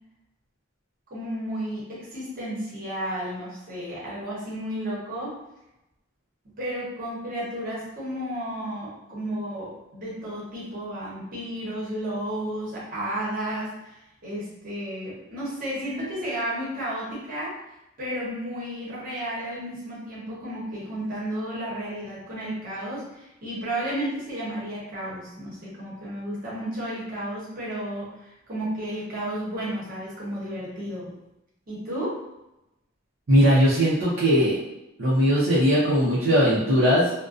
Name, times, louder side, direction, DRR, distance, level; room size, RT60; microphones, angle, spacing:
voice 1, 1.1-5.4 6.6-14.0 14.2-17.5 18.0-31.1 31.7-32.2, right 1 dB, 45° right, -7 dB, 0.9 m, -32 dB
voice 2, 33.3-34.6 35.0-37.1, equal, 65° right, -8 dB, 0.6 m, -19 dB
2.4 x 2.1 x 2.4 m, 0.92 s
head